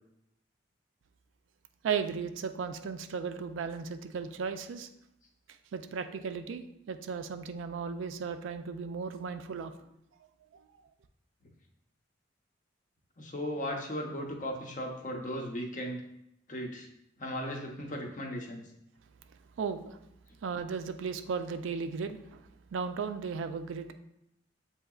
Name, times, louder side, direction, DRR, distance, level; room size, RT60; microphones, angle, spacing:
voice 1, 1.8-4.9 5.7-9.7 19.6-20.0 20.4-22.4 22.7-23.9, right 6 dB, 80° right, 9 dB, 0.3 m, -35 dB
voice 2, 13.2-16.0 16.5-16.9 17.2-18.6, equal, 40° left, 1 dB, 0.7 m, -36 dB
7.5 x 2.8 x 2.3 m, 0.80 s
head